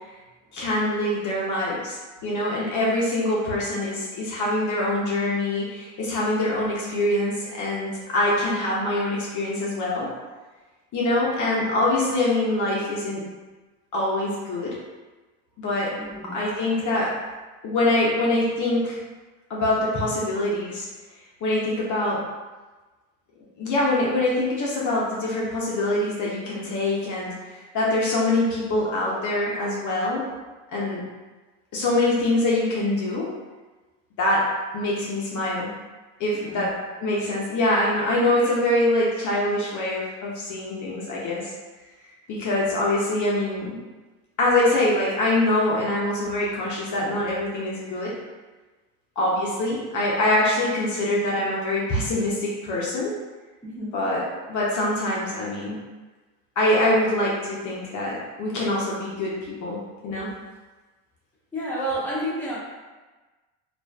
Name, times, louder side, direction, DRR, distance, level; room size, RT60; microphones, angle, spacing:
voice 1, 0.5-10.1 10.9-13.2 13.9-14.8 15.6-15.9 16.3-17.1 17.6-19.0 19.5-20.9 21.4-22.2 23.6-30.2 30.7-31.0 31.7-33.3 34.2-34.5 34.7-35.7 36.2-36.7 37.0-41.5 42.3-43.8 44.4-48.1 49.2-53.1 53.9-54.2 54.5-55.8 56.6-59.8 60.0-60.3, left 1 dB, 45° left, -5 dB, 0.7 m, -24 dB
voice 2, 16.0-16.4 26.6-26.8 36.3-36.7 53.6-54.0 61.5-62.6, right 1 dB, 5° left, -7 dB, 0.8 m, -31 dB
2.5 x 2.4 x 2.2 m, 1.2 s
hypercardioid pair, 80°, 43 cm